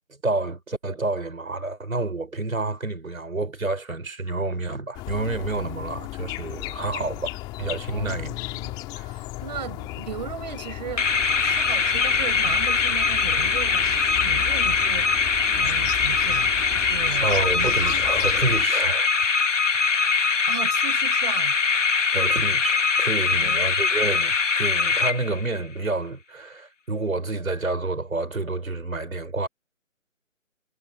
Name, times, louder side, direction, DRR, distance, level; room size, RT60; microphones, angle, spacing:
voice 1, 0.2-7.3 7.6-8.3 9.0-9.1 15.6-15.7 17.2-19.3 22.1-29.5, right 2 dB, 80° right, 4.5 m, -29 dB
sound 1, 4.9-18.7, left 20 dB, 10° left, 2.1 m, -34 dB
voice 2, 7.9-11.1 11.4-13.9 14.2-15.1 15.6-17.3 17.5-18.0 20.5-21.5 23.3-23.6, right 9 dB, 30° right, 5.4 m, -36 dB
sound 2, 11.0-25.6, left 5 dB, 60° left, 1.4 m, -22 dB
figure-of-eight pair, 150°, 41 cm